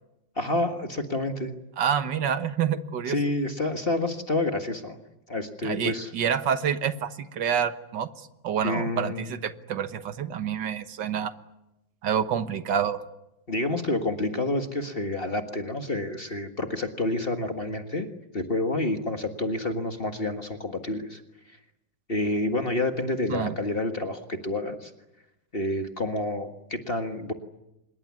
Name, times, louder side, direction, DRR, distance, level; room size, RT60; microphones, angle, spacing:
voice 1, 0.4-1.5 3.1-5.0 5.3-6.1 8.6-9.3 13.5-18.1 18.3-21.2 22.1-24.9 25.5-27.3, left 2 dB, 30° left, 6 dB, 1.8 m, -28 dB
voice 2, 1.8-3.2 5.6-8.1 8.4-11.3 12.0-13.0 23.3-23.5, right 8 dB, 75° right, 11 dB, 1.9 m, -27 dB
26.0 x 21.5 x 9.6 m, 0.91 s
omnidirectional pair, 2.0 m